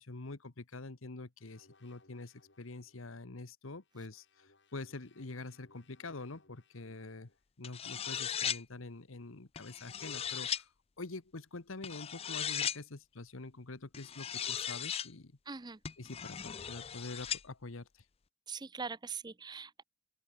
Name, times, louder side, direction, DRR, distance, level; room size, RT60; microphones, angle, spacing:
voice 1, 0.0-7.3 7.6-10.7 11.0-15.3 16.0-18.0, left 3 dB, 75° left, 1.3 m, -46 dB
sound 1, 1.4-3.0 3.8-7.4, left 3 dB, 60° left, 7.0 m, -68 dB
sound 2, 7.6-8.6 9.6-10.6 11.8-12.8 13.9-15.1 15.8-17.4, left 9 dB, 30° left, 0.5 m, -37 dB
voice 2, 15.5-15.8 18.5-19.8, right 5 dB, 20° right, 0.6 m, -42 dB
open air
head